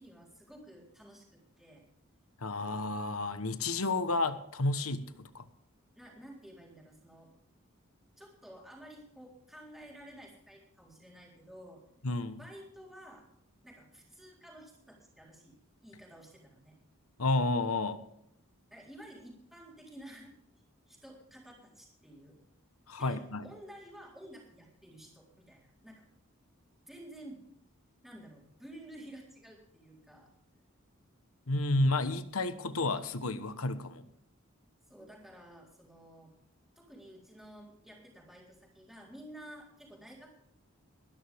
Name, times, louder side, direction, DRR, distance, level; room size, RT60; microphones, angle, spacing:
voice 1, 0.0-1.8 5.9-7.4 8.2-11.8 12.4-13.3 13.6-15.6 15.8-16.8 18.7-20.3 20.9-22.4 23.0-26.0 26.9-27.4 28.0-30.3 34.9-36.3 36.8-40.3, right 1 dB, ahead, -3 dB, 3.9 m, -52 dB
voice 2, 2.4-5.5 12.0-12.4 17.2-18.0 22.9-23.5 31.5-34.1, left 2 dB, 90° left, 11 dB, 1.2 m, -31 dB
22.0 x 11.5 x 3.6 m, 0.73 s
head